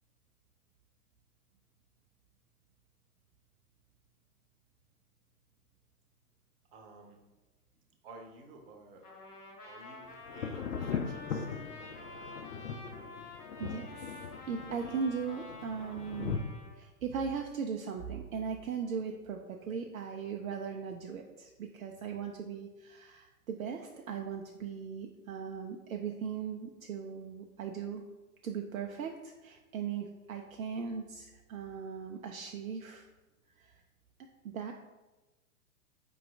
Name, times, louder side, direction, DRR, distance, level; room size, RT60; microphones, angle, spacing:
voice 1, 6.7-7.2 8.0-9.1 9.6-11.6, right 3 dB, 40° right, 2 dB, 0.8 m, -53 dB
Trumpet, 9.0-16.7, left 3 dB, 80° left, 1.1 m, -49 dB
Thunder, 10.3-16.4, left 6 dB, 65° left, 0.6 m, -39 dB
voice 2, 13.6-28.0 28.4-33.1 33.6-33.8 34.4-34.7, right 6 dB, 65° right, 3 dB, 0.5 m, -38 dB
4.8 x 3.0 x 3.4 m, 1.1 s
figure-of-eight pair, 105°, 46 cm